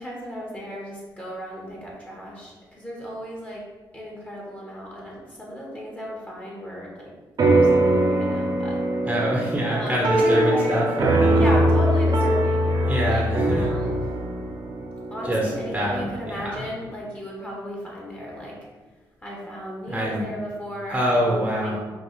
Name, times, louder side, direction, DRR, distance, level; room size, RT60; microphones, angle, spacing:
voice 1, 0.0-3.6 3.9-7.1 7.4-8.8 9.7-10.8 11.3-14.1 15.1-18.6 19.2-21.7, equal, 15° left, -4 dB, 1.3 m, -34 dB
sound 1, 7.4-16.1, right 1 dB, 50° right, 0.8 m, -22 dB
voice 2, 9.1-11.4 12.9-13.6 15.2-15.4 15.7-16.6 19.9-20.2 20.9-21.8, equal, 10° right, -3 dB, 1.0 m, -25 dB
5.2 x 2.8 x 3.3 m, 1.3 s
cardioid pair, 75°, 8 cm